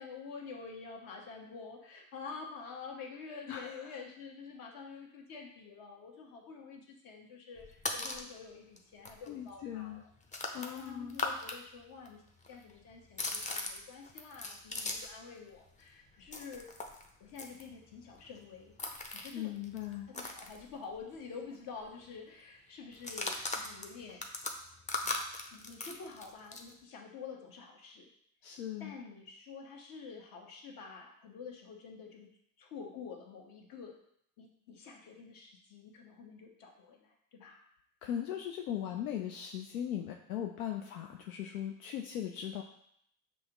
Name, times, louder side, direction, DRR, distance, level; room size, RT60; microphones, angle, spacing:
voice 1, 0.0-10.1 10.4-12.2 12.5-16.7 17.2-18.8 19.1-19.5 20.1-24.3 25.0-28.1 28.8-32.3 32.6-34.0 34.4-37.6, left 5 dB, 55° left, 1 dB, 1.2 m, -48 dB
voice 2, 3.5-3.9 9.3-10.0 10.5-11.2 19.3-20.1 28.4-28.9 38.0-42.6, left 10 dB, 85° left, 3 dB, 0.5 m, -39 dB
sound 1, 7.6-8.3 8.8-8.9 9.0-11.6 11.8-15.2 15.5-21.2 21.4-21.6 21.8-22.2 22.9-26.7, left 2 dB, 15° left, 0.6 m, -40 dB
6.3 x 2.7 x 2.9 m, 0.69 s
hypercardioid pair, 75°, 42 cm